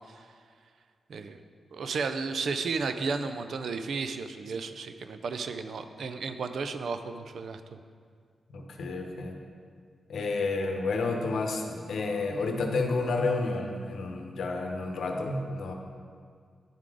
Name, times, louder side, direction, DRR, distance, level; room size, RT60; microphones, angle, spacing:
voice 1, 1.1-1.4 1.7-7.8, right 4 dB, 70° right, 9 dB, 0.4 m, -33 dB
voice 2, 8.5-9.4 10.1-15.7, left 3 dB, 80° left, 2 dB, 0.8 m, -30 dB
10.5 x 3.8 x 4.8 m, 2.1 s
cardioid pair, 75°, 0 cm